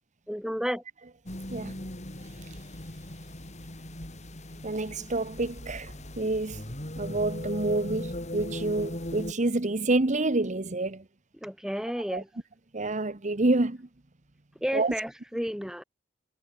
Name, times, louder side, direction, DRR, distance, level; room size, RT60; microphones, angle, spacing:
voice 1, 0.3-0.8 11.4-12.3 14.6-15.8, equal, 5° right, 4.8 m, -31 dB
sound 1, 1.3-9.3, left 1 dB, 35° left, 4.4 m, -39 dB
voice 2, 4.6-6.7 7.0-11.0 12.1-12.2 12.7-13.9 14.7-14.9, right 2 dB, 40° right, 1.1 m, -28 dB
head